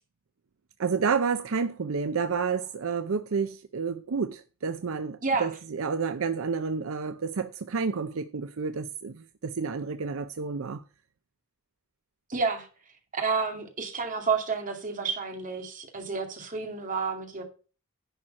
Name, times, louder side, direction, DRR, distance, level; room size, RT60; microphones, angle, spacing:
voice 1, 0.8-10.8, right 5 dB, 65° right, 0.5 m, -30 dB
voice 2, 12.3-12.7 13.1-17.4, right 4 dB, 40° right, 2.3 m, -30 dB
11.0 x 4.4 x 7.5 m
head